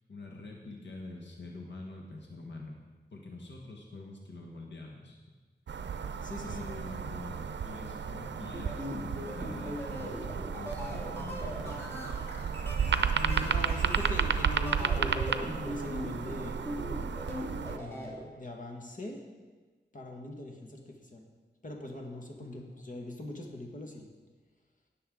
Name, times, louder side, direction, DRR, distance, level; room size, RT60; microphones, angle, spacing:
voice 1, 0.1-2.8 3.1-5.2 6.4-11.9 22.4-22.7, left 2 dB, 85° left, 0 dB, 1.5 m, -45 dB
sound 1, 5.7-17.8, right 6 dB, 85° right, 0.5 m, -33 dB
voice 2, 6.2-6.6 13.1-16.6 17.7-19.2 19.9-21.2 21.6-24.1, left 1 dB, 45° left, 1 dB, 1.8 m, -41 dB
sound 2, 8.4-18.2, left 1 dB, 15° left, 2.8 m, -40 dB
18.0 x 6.8 x 3.9 m, 1.3 s
wide cardioid pair, 80°, 18 cm